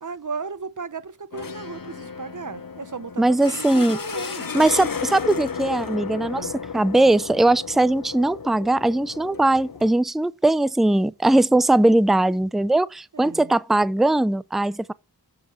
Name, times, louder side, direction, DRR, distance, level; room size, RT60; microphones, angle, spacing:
voice 1, 0.0-4.5 6.2-6.5 13.1-13.5, right 4 dB, 50° right, 0.9 m, -35 dB
sound 1, 1.3-9.9, left 6 dB, 60° left, 1.0 m, -33 dB
voice 2, 3.2-4.0 4.5-6.5 6.7-14.9, right 2 dB, ahead, 0.5 m, -20 dB
8.1 x 7.6 x 7.2 m
wide cardioid pair, 45°, 38 cm